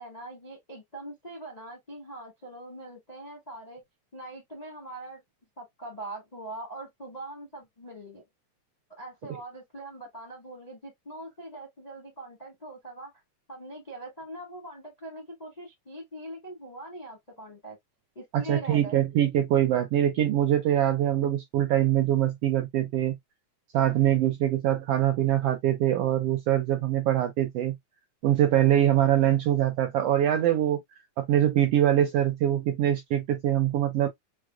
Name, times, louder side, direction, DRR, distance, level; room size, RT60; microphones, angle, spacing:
voice 1, 0.0-3.8 4.1-5.2 5.6-8.2 8.9-13.1 13.5-17.8 18.1-19.0, right 1 dB, 35° left, 0.6 m, -42 dB
voice 2, 18.3-23.1 23.7-27.7 28.2-30.8 31.2-34.1, right 11 dB, 75° right, 1.4 m, -23 dB
6.2 x 2.2 x 2.3 m
omnidirectional pair, 3.3 m